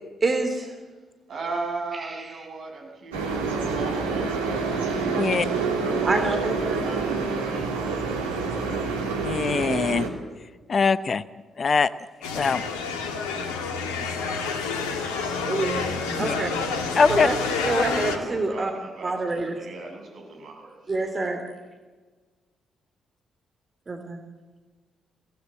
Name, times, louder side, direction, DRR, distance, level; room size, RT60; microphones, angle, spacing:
voice 1, 0.2-0.7 1.9-2.4 6.1-6.8 15.5-15.9 16.2-16.5 17.1-18.7 19.0-19.6 20.9-21.4 23.9-24.2, right 3 dB, 30° right, 5 dB, 3.1 m, -27 dB
voice 2, 1.3-6.4 6.8-8.2 8.5-9.0 17.5-20.8, right 3 dB, 50° right, 0 dB, 7.4 m, -37 dB
sound 1, 3.1-10.1, right 4 dB, 80° right, 2.9 m, -27 dB
voice 3, 9.2-10.1 10.7-11.2 11.6-11.9 12.3-12.6 16.2-16.3 16.9-17.3, left 5 dB, 40° left, 17 dB, 0.7 m, -22 dB
sound 2, 12.2-18.2, left 5 dB, 70° left, 2.1 m, -28 dB
23.0 x 17.5 x 8.7 m, 1.3 s
figure-of-eight pair, 40°, 0 cm